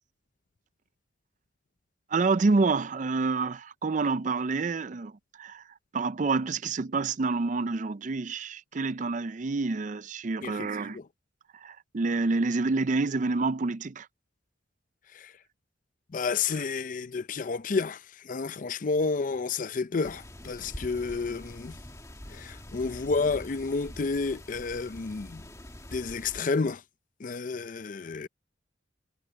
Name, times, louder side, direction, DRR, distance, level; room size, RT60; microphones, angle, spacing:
voice 1, 2.1-5.1 5.4-5.6 5.9-11.0 11.6-14.1, right 3 dB, 40° right, 0.5 m, -28 dB
voice 2, 10.4-11.1 15.1-15.3 16.1-21.8 22.3-25.4 25.9-26.8 27.2-28.3, left 4 dB, 45° left, 0.5 m, -30 dB
sound 1, 20.0-26.4, left 1 dB, 15° left, 2.0 m, -45 dB
head